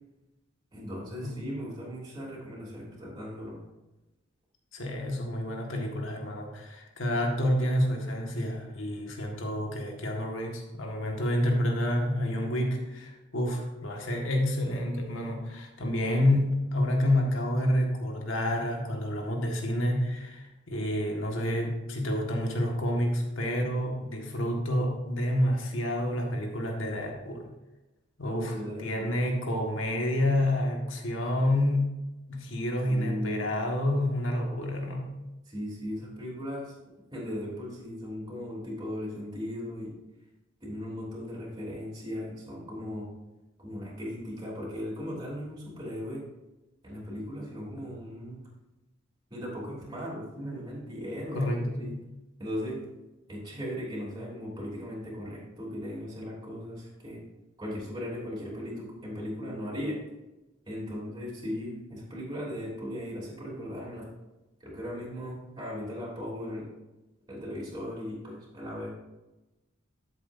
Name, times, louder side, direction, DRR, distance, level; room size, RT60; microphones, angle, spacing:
voice 1, 0.7-3.6 28.2-29.1 32.9-33.5 35.5-36.8 37.1-39.9 40.6-43.1 43.6-46.3 46.8-48.4 49.3-51.9 52.4-52.8 53.3-57.2 57.6-60.0 60.6-64.1 64.6-66.6 67.3-68.9, equal, 20° right, -6 dB, 3.3 m, -37 dB
voice 2, 4.7-27.5 28.2-32.0 32.3-35.2 51.3-52.1, left 1 dB, 85° left, 1 dB, 1.8 m, -29 dB
12.5 x 7.6 x 2.7 m, 1.0 s
head